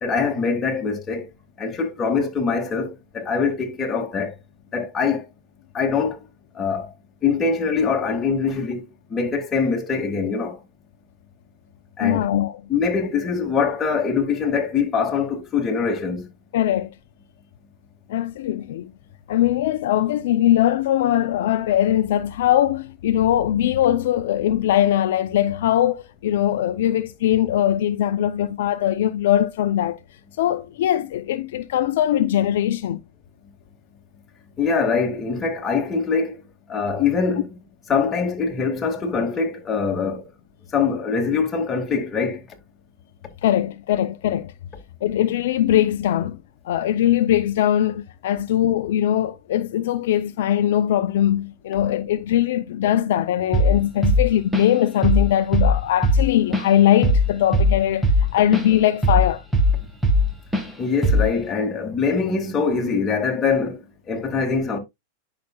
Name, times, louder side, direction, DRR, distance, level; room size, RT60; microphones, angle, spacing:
voice 1, 0.0-1.3 1.6-4.4 4.7-5.2 5.7-6.2 6.5-6.9 7.2-10.6 12.0-12.2 12.7-16.3 34.6-36.4 36.7-37.5 37.9-40.3 40.7-42.4 60.8-63.8 64.1-64.8, left 5 dB, 25° left, 2.2 m, -23 dB
voice 2, 12.0-12.6 16.5-16.9 18.1-18.9 19.3-30.0 30.4-33.0 43.4-44.5 45.0-46.4 46.6-59.4, left 11 dB, 70° left, 0.6 m, -21 dB
Drum kit / Drum, 53.5-53.8 54.0-54.8 55.0-55.3 55.5-58.7 59.0-60.3 60.5-60.7 61.0-61.4, left 1 dB, 5° right, 1.8 m, -18 dB
10.5 x 5.8 x 2.3 m
hypercardioid pair, 120°, 0 cm